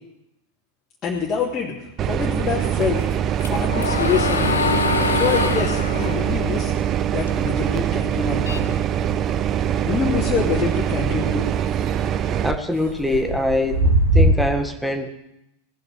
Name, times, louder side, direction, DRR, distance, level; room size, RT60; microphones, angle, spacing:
voice 1, 1.0-3.0 3.4-4.7 5.1-6.7 7.1-8.8 9.8-11.5, left 6 dB, 25° left, -6 dB, 2.9 m, -26 dB
sound 1, 1.1-2.3 2.6-14.3, right 1 dB, 45° right, 4.6 m, -27 dB
sound 2, 2.0-12.6, right 10 dB, 30° right, 0.7 m, -23 dB
sound 3, 3.0-7.5 7.9-9.4, left 4 dB, 70° left, 1.0 m, -25 dB
voice 2, 12.4-13.8 14.1-15.1, left 1 dB, ahead, 5 dB, 1.5 m, -23 dB
18.0 x 7.8 x 9.8 m, 0.88 s
figure-of-eight pair, 90°, 0 cm